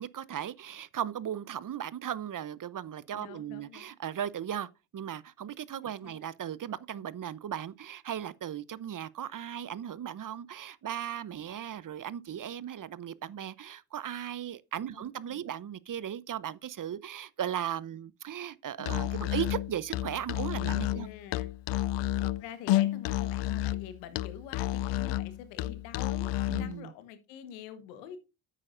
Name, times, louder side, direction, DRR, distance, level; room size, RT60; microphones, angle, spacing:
voice 1, 0.0-21.1 26.5-26.9, right 10 dB, 40° right, 0.7 m, -37 dB
voice 2, 3.2-3.9 5.8-6.2 14.9-15.5 20.9-21.5 22.2-28.2, left 9 dB, 90° left, 1.4 m, -46 dB
Musical instrument, 18.8-26.8, left 15 dB, 60° left, 0.5 m, -31 dB
9.9 x 8.4 x 2.5 m
hypercardioid pair, 50°, 50 cm